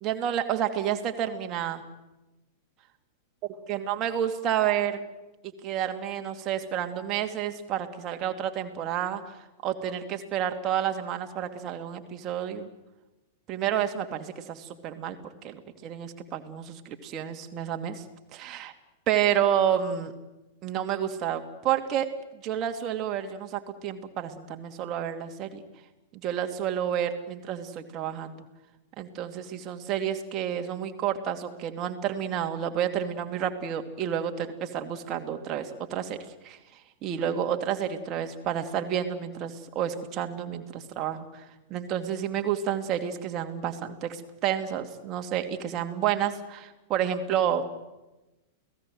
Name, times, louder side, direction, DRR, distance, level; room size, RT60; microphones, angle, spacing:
voice 1, 0.0-1.8 3.7-5.0 5.6-9.3 9.6-12.7 13.5-15.2 15.4-18.0 18.3-18.7 19.1-20.1 20.6-22.1 22.4-25.6 26.1-28.4 29.0-36.2 36.4-36.6 37.0-41.4 41.7-47.7, right 9 dB, 35° right, 6 dB, 2.6 m, -30 dB
29.5 x 18.0 x 7.9 m, 1.0 s
figure-of-eight pair, 95°, 0 cm